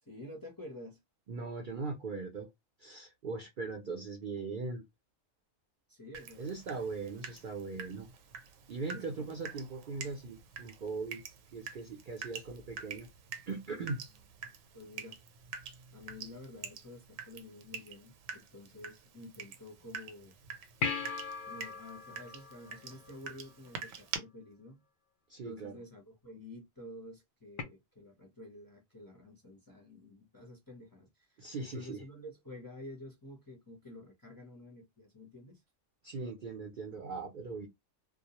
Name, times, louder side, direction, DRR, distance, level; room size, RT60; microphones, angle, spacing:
voice 1, 0.0-1.0 5.9-6.5 8.9-9.3 14.7-15.2 15.9-20.4 21.4-24.8 25.4-35.6, left 1 dB, 25° left, 0.5 m, -50 dB
voice 2, 1.3-2.5 2.8-4.8 6.4-8.1 8.7-11.2 11.5-13.1 13.5-14.0 25.3-25.8 31.4-32.0 36.0-37.7, right 4 dB, 60° right, 0.5 m, -40 dB
Water tap faucet / Drip, 6.1-24.2, right 6 dB, 75° right, 0.9 m, -47 dB
sound 1, 20.8-23.5 27.6-27.7, left 5 dB, 75° left, 0.4 m, -38 dB
2.3 x 2.1 x 2.8 m
omnidirectional pair, 1.4 m